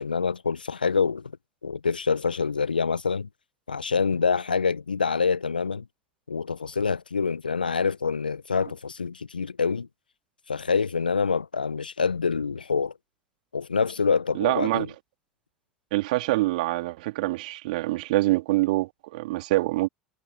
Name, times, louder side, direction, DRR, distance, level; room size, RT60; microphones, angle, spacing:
voice 1, 0.0-1.3 1.6-3.3 3.7-5.9 6.3-9.9 10.5-12.9 13.5-14.9, left 5 dB, 85° left, 1.2 m, -26 dB
voice 2, 14.3-14.9 15.9-19.9, right 19 dB, 65° right, 2.5 m, -25 dB
figure-of-eight pair, 75°, 5 cm